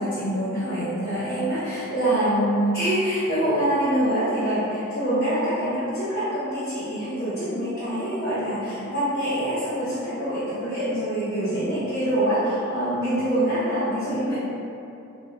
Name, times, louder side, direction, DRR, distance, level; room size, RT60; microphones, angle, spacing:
voice 1, 0.0-14.4, right 1 dB, 50° left, -13 dB, 0.9 m, -25 dB
4.5 x 2.7 x 2.5 m, 2.8 s
head